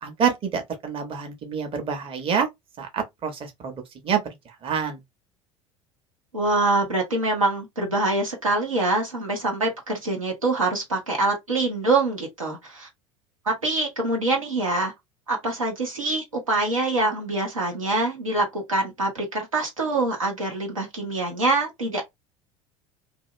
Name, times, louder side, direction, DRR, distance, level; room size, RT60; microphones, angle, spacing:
voice 1, 0.0-2.5 2.8-3.8 4.0-4.2 4.6-5.0, right 7 dB, 30° right, 1.0 m, -27 dB
voice 2, 6.3-12.9 13.4-14.9 15.3-22.0, right 2 dB, 80° right, 1.1 m, -25 dB
2.7 x 2.5 x 3.1 m
figure-of-eight pair, 70°, 17 cm